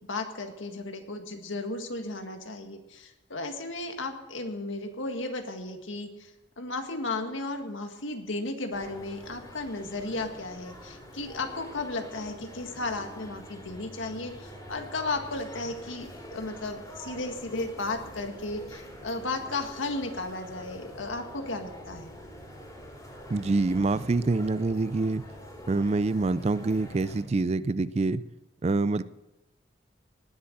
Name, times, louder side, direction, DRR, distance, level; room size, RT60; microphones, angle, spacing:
voice 1, 0.1-6.3 6.6-22.2, left 2 dB, 80° left, 5 dB, 1.8 m, -34 dB
sound 1, 8.7-27.2, equal, 20° left, 3.2 m, -45 dB
voice 2, 23.3-25.2 25.7-28.2 28.6-29.0, right 3 dB, 35° right, 16 dB, 0.4 m, -26 dB
18.5 x 7.0 x 7.8 m, 1.0 s
head